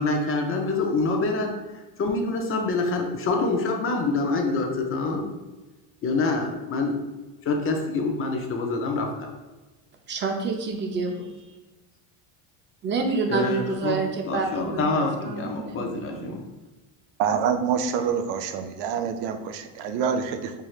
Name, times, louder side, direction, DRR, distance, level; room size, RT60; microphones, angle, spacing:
voice 1, 0.0-1.5 2.0-5.3 6.0-7.0 7.5-9.3 13.3-14.0 14.3-16.4, left 3 dB, 35° left, 2 dB, 0.5 m, -26 dB
voice 2, 10.1-11.3 12.8-16.4, right 4 dB, 25° right, 4 dB, 0.5 m, -28 dB
voice 3, 17.2-20.5, right 7 dB, 75° right, 7 dB, 0.5 m, -26 dB
4.6 x 3.1 x 2.4 m, 1.1 s
cardioid pair, 135°, 42 cm